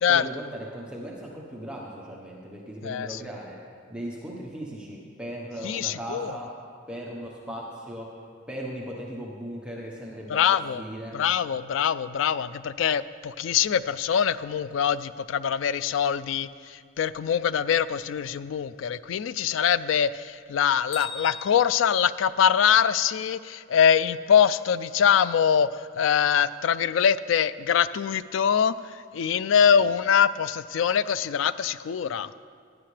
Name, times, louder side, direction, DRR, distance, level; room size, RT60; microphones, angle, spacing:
voice 1, 0.1-3.6 3.9-6.5 6.9-8.1 8.5-10.4 10.7-11.2 29.7-29.8, equal, 5° right, -3 dB, 1.1 m, -37 dB
voice 2, 2.8-3.2 5.6-6.3 10.3-10.8 11.1-28.7 29.1-32.3, left 8 dB, 75° left, 16 dB, 0.3 m, -23 dB
Bell, 20.9-22.9, left 5 dB, 40° left, 1.5 m, -41 dB
16.0 x 10.5 x 3.3 m, 2.1 s
head